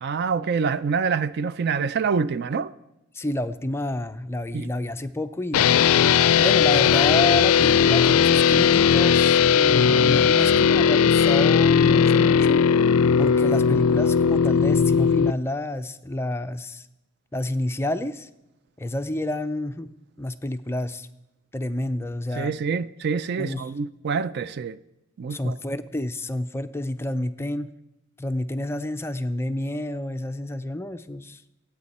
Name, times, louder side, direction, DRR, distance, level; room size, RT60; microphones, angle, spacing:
voice 1, 0.0-2.7 4.5-4.7 22.4-24.8 25.2-25.6, right 5 dB, 50° right, 0.4 m, -26 dB
voice 2, 3.1-5.7 6.3-12.6 13.2-16.9 17.3-18.3 18.8-19.9 20.2-21.1 21.5-22.5 23.4-23.7 25.3-27.7 28.2-31.4, left 1 dB, 10° left, 0.4 m, -29 dB
sound 1, 5.5-15.3, left 7 dB, 85° left, 0.4 m, -18 dB
26.0 x 8.7 x 4.2 m
head